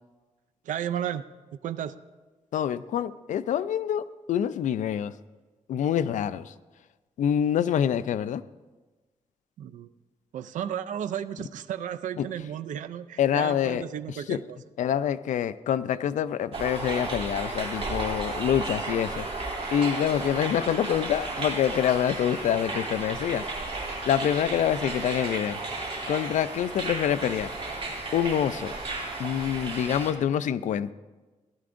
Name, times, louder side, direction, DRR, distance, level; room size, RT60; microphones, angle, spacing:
voice 1, 0.6-1.2 1.6-1.9 9.6-9.9 10.3-14.6, right 9 dB, 90° right, 12 dB, 0.4 m, -33 dB
voice 2, 2.5-5.1 5.7-6.5 7.2-8.4 12.2-12.3 13.2-13.8 14.3-14.4 14.8-19.3 19.7-23.4 24.1-25.6 26.1-27.5 28.1-28.7 29.2-30.9, left 9 dB, 80° left, 14 dB, 0.4 m, -26 dB
sound 1, 16.5-30.1, right 2 dB, 50° right, 2.9 m, -34 dB
16.0 x 12.0 x 2.6 m, 1.2 s
wide cardioid pair, 120°, 13 cm